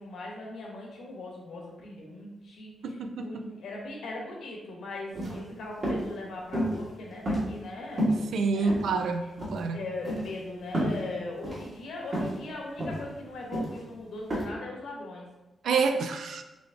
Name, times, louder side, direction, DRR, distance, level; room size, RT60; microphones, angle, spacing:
voice 1, 0.0-8.8 9.7-15.3, left 2 dB, 75° left, -2 dB, 1.2 m, -40 dB
voice 2, 2.8-3.3 8.3-9.2 9.5-9.8 15.6-16.4, right 4 dB, 75° right, 6 dB, 0.4 m, -27 dB
sound 1, 5.1-5.4 5.8-6.0 6.5-6.8 7.3-7.7 8.0-8.2 8.7-9.1 9.4-9.6 10.0-10.3 10.7-11.0 11.4-11.6 12.1-12.4 12.8-13.0 13.5-13.8 14.3-14.4, equal, 35° right, 1.4 m, -29 dB
4.0 x 3.4 x 3.4 m, 1.1 s
wide cardioid pair, 150°, 0 cm